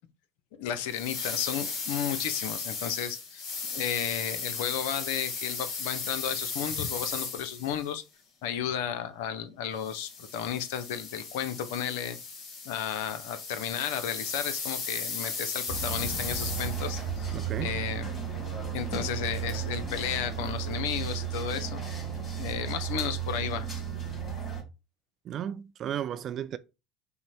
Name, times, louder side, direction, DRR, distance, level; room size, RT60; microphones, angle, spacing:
voice 1, 0.6-3.4 3.7-8.0 8.4-12.2 12.6-18.1 18.5-21.8 22.3-23.7, left 9 dB, 65° left, 0.6 m, -33 dB
sound 1, 0.9-7.9 9.8-17.0, left 5 dB, 50° left, 1.5 m, -36 dB
sound 2, 15.7-24.6, right 7 dB, 20° left, 2.7 m, -34 dB
voice 2, 17.3-17.8 25.3-26.6, right 10 dB, 40° right, 0.4 m, -34 dB
5.6 x 2.1 x 4.2 m
figure-of-eight pair, 70°, 0 cm